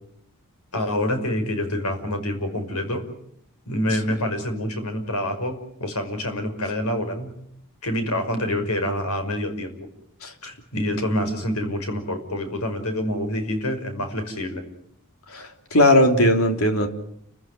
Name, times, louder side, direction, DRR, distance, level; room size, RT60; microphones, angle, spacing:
voice 1, 0.7-3.1 3.7-7.3 7.8-9.8 10.4-14.6, left 1 dB, 85° left, 5.7 m, -27 dB
voice 2, 15.3-16.9, left 1 dB, 70° left, 3.4 m, -18 dB
30.0 x 15.5 x 9.9 m
head